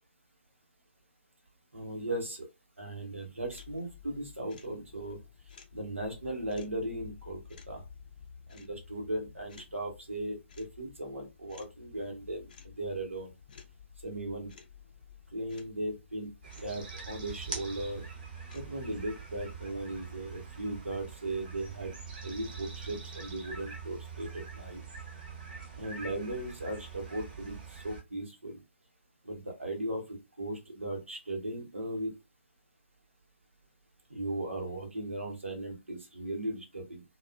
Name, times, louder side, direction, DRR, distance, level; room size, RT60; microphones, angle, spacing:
voice 1, 1.7-2.5 2.8-5.2 5.7-7.4 7.7-7.8 8.5-13.3 14.0-14.5 15.3-16.3 16.6-18.1 18.5-21.9 22.2-24.8 25.8-28.6 29.2-32.2 34.1-37.0, right 1 dB, 75° right, 2 dB, 1.0 m, -37 dB
sound 1, 3.4-19.2, left 7 dB, 40° left, 0.5 m, -53 dB
sound 2, 16.4-28.0, right 5 dB, 45° right, 0.8 m, -44 dB
2.4 x 2.3 x 2.3 m, 0.24 s
figure-of-eight pair, 135°, 7 cm